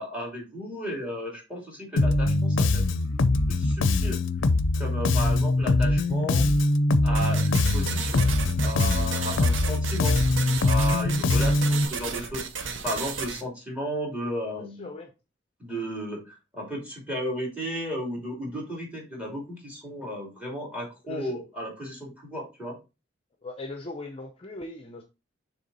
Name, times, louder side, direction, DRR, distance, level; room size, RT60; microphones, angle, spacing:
voice 1, 0.0-2.8 3.2-4.2 4.8-6.4 7.0-10.2 10.6-14.9 15.6-22.8, equal, 5° right, 2.7 m, -34 dB
Bass guitar, 2.0-11.8, left 2 dB, 75° left, 0.5 m, -23 dB
sound 1, 7.1-13.4, right 5 dB, 80° right, 0.8 m, -34 dB
voice 2, 14.8-15.1 21.1-21.3 23.4-25.0, left 2 dB, 30° left, 0.6 m, -39 dB
6.8 x 3.4 x 4.1 m
head